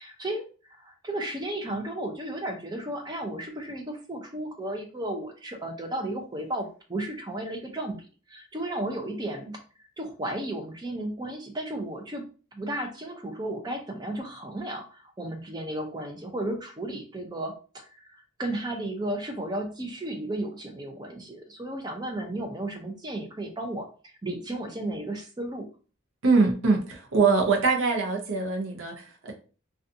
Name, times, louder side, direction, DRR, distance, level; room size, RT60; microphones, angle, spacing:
voice 1, 0.0-8.0 8.3-9.6 10.0-12.2 12.5-25.7, right 1 dB, 20° right, 3 dB, 0.4 m, -34 dB
voice 2, 26.2-29.3, right 4 dB, 65° right, 1 dB, 0.6 m, -23 dB
2.5 x 2.3 x 2.6 m, 0.37 s
head